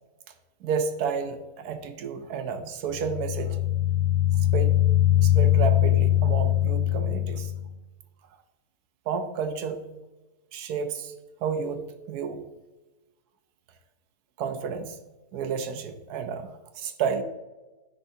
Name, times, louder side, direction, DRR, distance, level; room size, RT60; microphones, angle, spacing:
voice 1, 0.6-3.6 4.5-4.8 5.2-7.5 9.1-9.8 10.5-11.1 11.4-12.4 14.4-15.0 15.3-17.2, right 6 dB, 85° right, 8 dB, 1.2 m, -31 dB
sound 1, 2.9-7.7, left 12 dB, 75° left, 1.6 m, -22 dB
9.9 x 3.9 x 2.7 m, 1.1 s
omnidirectional pair, 1.6 m